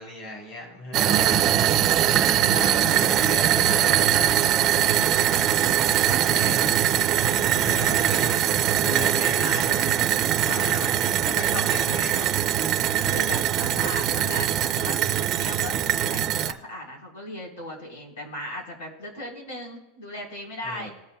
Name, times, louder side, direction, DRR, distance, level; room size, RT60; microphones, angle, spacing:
voice 1, 0.0-1.9 2.7-4.4 6.1-6.7 7.6-8.4 8.8-10.0 10.4-12.3 13.0-13.2 20.6-20.9, left 1 dB, 45° left, -1 dB, 3.3 m, -36 dB
sound 1, 0.9-16.5, right 11 dB, 30° right, 0.4 m, -22 dB
voice 2, 2.3-3.0 4.1-5.1 5.9-6.6 7.4-7.8 10.4-10.8 12.9-15.0 15.3-20.9, left 1 dB, 80° left, 0 dB, 4.0 m, -37 dB
20.5 x 7.0 x 2.2 m, 0.99 s
supercardioid pair, 170°, 0 cm